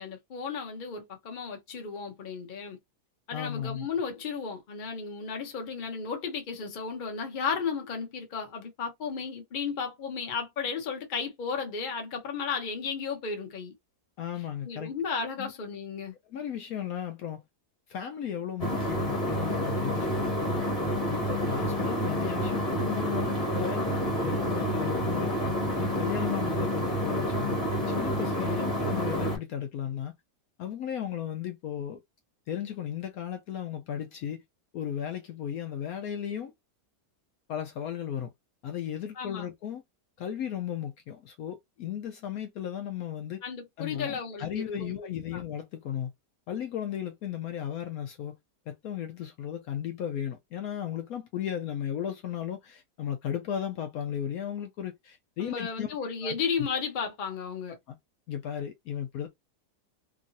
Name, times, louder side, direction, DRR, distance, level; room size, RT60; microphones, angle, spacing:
voice 1, 0.0-2.8 3.3-13.7 14.6-16.1 39.2-39.5 43.4-45.0 45.3-45.4 55.4-57.8, left 5 dB, 40° left, 0.7 m, -34 dB
voice 2, 3.3-3.9 14.2-14.9 15.4-15.5 16.3-17.4 17.9-20.7 21.1-25.3 25.8-30.1 30.6-32.0 32.5-34.4 34.7-36.5 37.5-38.3 38.6-39.8 40.2-43.4 43.8-46.1 46.5-48.4 48.7-55.9 56.2-56.4 57.9-58.0 58.3-59.3, left 9 dB, 70° left, 0.9 m, -35 dB
sound 1, 18.6-29.4, equal, 25° left, 1.3 m, -29 dB
3.0 x 2.6 x 2.6 m
omnidirectional pair, 1.8 m